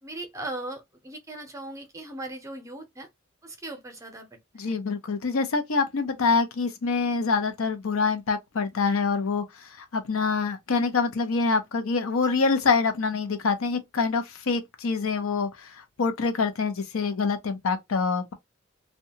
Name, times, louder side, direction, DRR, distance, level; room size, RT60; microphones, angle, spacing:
voice 1, 0.0-3.1 3.4-4.3 4.5-4.7, right 2 dB, 15° right, 0.6 m, -38 dB
voice 2, 4.6-9.4 9.8-15.7 16.0-18.3, left 4 dB, 75° left, 0.6 m, -25 dB
2.7 x 2.2 x 2.7 m
head